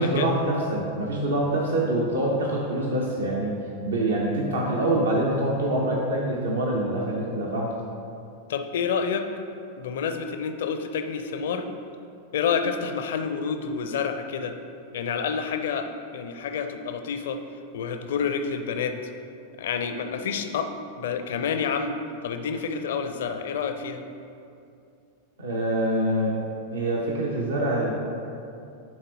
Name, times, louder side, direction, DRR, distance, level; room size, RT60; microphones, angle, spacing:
voice 1, 0.0-3.6 3.8-7.7 25.4-26.3 26.7-28.2, right 1 dB, 65° right, -2 dB, 0.9 m, -25 dB
voice 2, 8.5-9.3 9.8-11.7 12.3-14.5 14.9-17.4 17.7-18.9 19.6-20.7 21.0-22.0 22.2-24.0, left 6 dB, 60° left, 7 dB, 0.5 m, -28 dB
10.5 x 4.0 x 4.0 m, 2.5 s
figure-of-eight pair, 90°, 0 cm